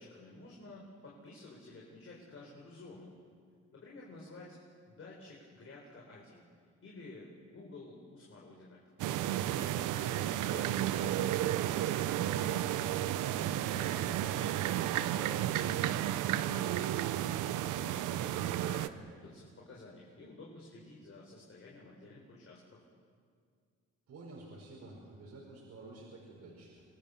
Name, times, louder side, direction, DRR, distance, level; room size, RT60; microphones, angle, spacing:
voice 1, 0.0-3.1 3.7-4.6 4.9-6.4 6.8-8.8 9.4-14.7 15.1-16.9 17.6-22.8, left 2 dB, 45° left, -3 dB, 4.6 m, -51 dB
sound 1, 9.0-18.9, right 12 dB, 90° right, 0.8 m, -32 dB
voice 2, 24.1-26.8, right 2 dB, 65° right, -4 dB, 5.7 m, -51 dB
27.0 x 18.5 x 7.0 m, 2.1 s
cardioid pair, 90°, 30 cm